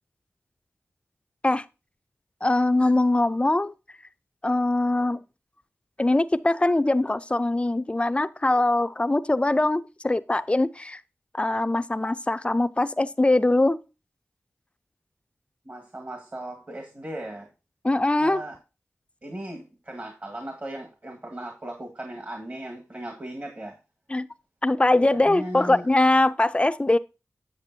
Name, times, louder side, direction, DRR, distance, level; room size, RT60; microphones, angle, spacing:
voice 1, 2.4-3.7 4.4-5.2 6.0-11.0 11.3-13.8 17.8-18.4 24.1-24.3 24.6-27.0, left 2 dB, 20° left, 0.5 m, -22 dB
voice 2, 15.7-17.5 18.2-18.6 19.2-23.8 24.9-25.8, right 1 dB, 40° right, 1.8 m, -37 dB
8.3 x 7.2 x 2.7 m
cardioid pair, 50°, 5 cm